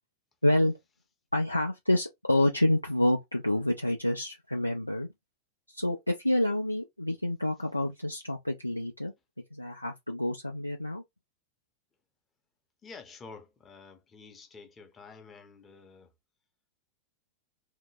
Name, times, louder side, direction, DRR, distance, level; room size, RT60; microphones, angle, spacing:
voice 1, 0.4-0.7 1.3-5.1 5.7-9.1 9.5-11.0, left 1 dB, 85° left, 0.4 m, -28 dB
voice 2, 12.8-16.1, left 4 dB, 20° left, 0.7 m, -49 dB
2.8 x 2.0 x 3.2 m
figure-of-eight pair, 90°, 0 cm